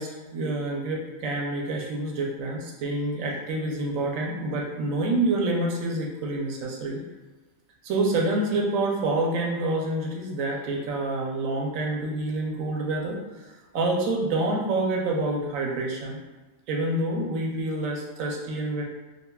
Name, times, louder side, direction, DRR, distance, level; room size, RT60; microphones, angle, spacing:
voice 1, 0.0-7.0 7.8-13.2 13.7-16.2 16.7-18.8, right 2 dB, 85° right, -1 dB, 1.0 m, -27 dB
5.1 x 2.2 x 2.2 m, 1.2 s
omnidirectional pair, 1.4 m